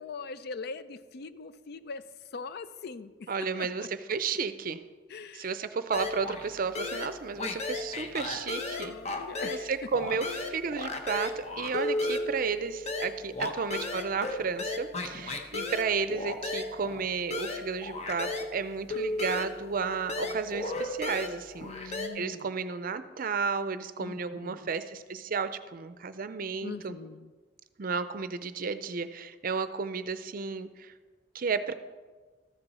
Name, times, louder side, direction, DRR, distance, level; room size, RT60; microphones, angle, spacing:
voice 1, 0.0-2.0 2.3-3.3 3.6-3.7 5.1-5.6 8.7-9.7 13.4-13.5 15.1-15.4 20.2-20.4 21.6-22.5 24.0-24.6 26.6-27.3, left 4 dB, 60° left, 14 dB, 0.4 m, -42 dB
voice 2, 3.3-4.8 5.3-9.2 9.5-26.9 27.8-30.9 31.3-31.7, right 5 dB, 50° right, 12 dB, 0.5 m, -33 dB
sound 1, 5.9-6.5 6.7-9.7 9.9-18.5 18.9-22.1, left 2 dB, 40° left, 0.8 m, -34 dB
13.5 x 6.8 x 4.2 m, 1.4 s
head